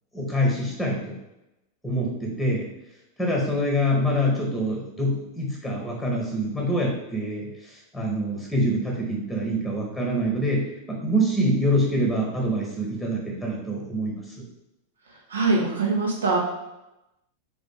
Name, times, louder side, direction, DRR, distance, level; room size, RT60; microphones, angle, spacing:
voice 1, 0.1-1.2 1.8-2.7 3.2-14.4, equal, 5° left, -1 dB, 1.2 m, -25 dB
voice 2, 15.3-16.4, right 3 dB, 70° right, -1 dB, 1.1 m, -22 dB
4.0 x 3.5 x 3.6 m, 0.92 s
figure-of-eight pair, 90°, 0 cm